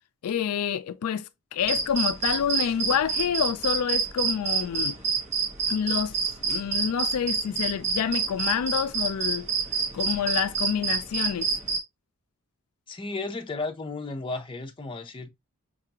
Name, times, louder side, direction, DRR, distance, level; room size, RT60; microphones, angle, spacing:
voice 1, 0.2-4.9 5.7-6.2 6.4-9.5 9.9-11.5, left 8 dB, 75° left, 0.4 m, -28 dB
sound 1, 1.6-11.8, right 5 dB, 30° right, 1.1 m, -28 dB
voice 2, 12.9-15.3, left 3 dB, 25° left, 0.6 m, -34 dB
5.3 x 2.5 x 2.8 m
head